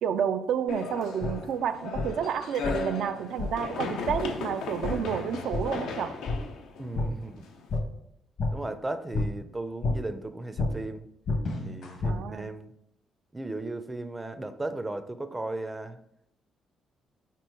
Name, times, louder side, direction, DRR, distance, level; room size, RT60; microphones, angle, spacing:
voice 1, 0.0-6.2 12.1-12.5, right 8 dB, 75° right, 8 dB, 0.4 m, -30 dB
sound 1, 0.7-7.8, left 4 dB, 90° left, 0.8 m, -36 dB
sound 2, 1.2-1.3 1.9-2.1 2.6-2.8 3.4-3.5 4.1-4.2 4.8-4.9 5.5-5.6 6.3-6.4 6.9-7.1 7.7-7.8 8.4-8.5 9.1-9.3 9.8-9.9 10.6-10.7 11.3-12.1, left 3 dB, 65° left, 1.4 m, -29 dB
voice 2, 6.8-7.4 8.5-11.1 11.6-12.7 13.3-16.0, right 2 dB, 15° right, 10 dB, 0.5 m, -36 dB
4.9 x 4.5 x 4.7 m, 0.76 s
cardioid pair, 90°, 0 cm